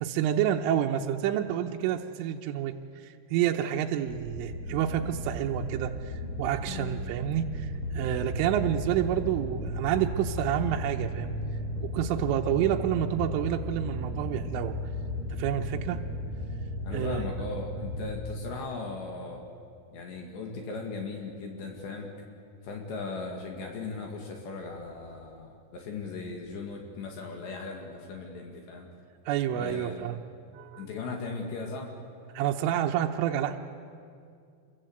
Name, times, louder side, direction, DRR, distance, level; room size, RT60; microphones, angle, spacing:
voice 1, 0.0-2.8 3.0-11.3 11.8-14.8 15.3-16.0 16.9-17.2 29.3-30.2 30.6-30.9 32.4-33.6, right 11 dB, 80° right, 3 dB, 3.4 m, -29 dB
sound 1, 4.1-18.1, left 1 dB, 25° left, 6.9 m, -35 dB
voice 2, 6.6-7.0 16.8-19.4 19.9-22.1 22.6-28.9 29.5-30.0 30.8-31.9, left 3 dB, 65° left, 1 dB, 4.1 m, -38 dB
27.5 x 23.0 x 8.0 m, 2.4 s
omnidirectional pair, 5.8 m